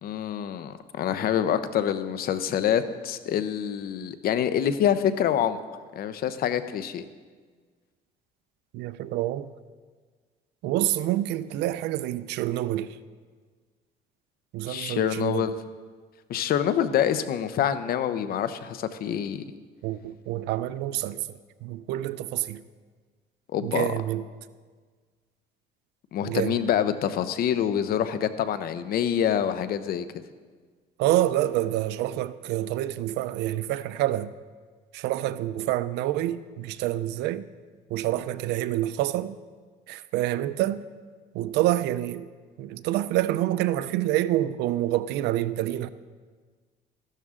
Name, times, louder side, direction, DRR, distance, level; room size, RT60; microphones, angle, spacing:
voice 1, 0.0-5.6 5.9-7.0 14.7-15.6 16.3-19.4 23.5-23.9 26.1-30.1, left 9 dB, 60° left, 0.8 m, -26 dB
voice 2, 8.7-9.5 10.6-13.0 14.5-15.5 19.8-22.6 23.6-24.2 26.2-26.6 31.0-34.3 34.9-37.5 37.9-39.4 39.9-40.8 41.3-42.3 42.6-45.9, right 14 dB, 85° right, 0.5 m, -27 dB
14.0 x 12.0 x 3.7 m
cardioid pair, 110°, 17 cm